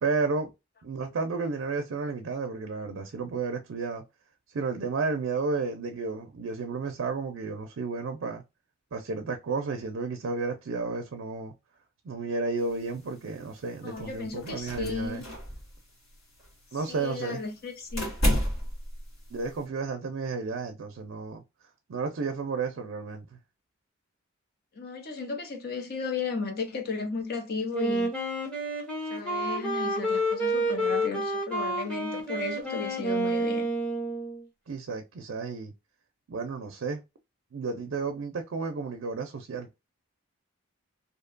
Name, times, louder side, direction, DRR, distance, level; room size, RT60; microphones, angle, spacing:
voice 1, 0.0-0.5 0.8-4.0 4.5-8.4 8.9-11.5 12.0-15.2 16.7-17.4 19.3-21.4 21.9-23.3 34.7-35.7 36.3-37.0 37.5-39.7, right 4 dB, 65° right, 0.4 m, -32 dB
sound 1, 12.6-19.6, equal, 70° left, 1.2 m, -33 dB
voice 2, 13.8-15.3 16.9-18.1 24.8-28.1 29.1-33.7, left 4 dB, 45° left, 0.6 m, -34 dB
Wind instrument woodwind instrument, 27.7-34.4, right 1 dB, 5° left, 0.7 m, -29 dB
2.7 x 2.1 x 2.4 m
head